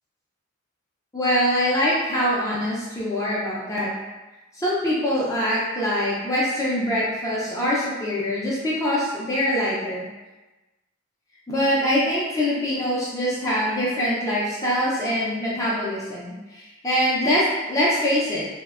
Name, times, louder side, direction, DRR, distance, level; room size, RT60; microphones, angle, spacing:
voice 1, 1.1-3.9 4.5-10.0 11.5-18.5, equal, 15° left, -7 dB, 0.4 m, -24 dB
2.5 x 2.1 x 2.3 m, 1.1 s
head